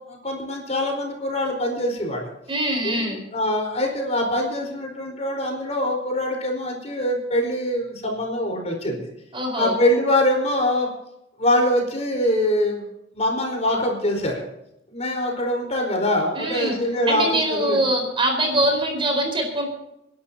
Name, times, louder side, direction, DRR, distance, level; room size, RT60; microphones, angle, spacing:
voice 1, 0.0-2.3 2.8-9.1 9.5-10.9 11.4-12.8 13.1-14.4 14.9-17.2 17.5-17.8, left 1 dB, 40° left, 1 dB, 4.4 m, -23 dB
voice 2, 2.5-3.2 9.3-9.8 16.3-16.8 17.1-19.7, right 1 dB, 30° right, 2 dB, 4.5 m, -23 dB
29.0 x 11.5 x 2.9 m, 0.81 s
head